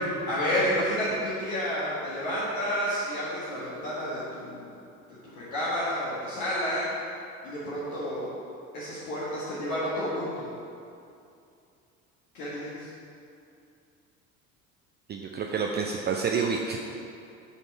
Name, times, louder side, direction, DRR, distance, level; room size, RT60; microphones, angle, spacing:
voice 1, 0.0-4.7 5.3-6.9 7.4-8.3 8.7-10.5 12.3-12.9, equal, 65° left, -9 dB, 1.6 m, -30 dB
voice 2, 15.1-16.8, right 5 dB, 25° right, 1 dB, 0.4 m, -28 dB
7.9 x 4.1 x 4.5 m, 2.5 s
figure-of-eight pair, 60°, 42 cm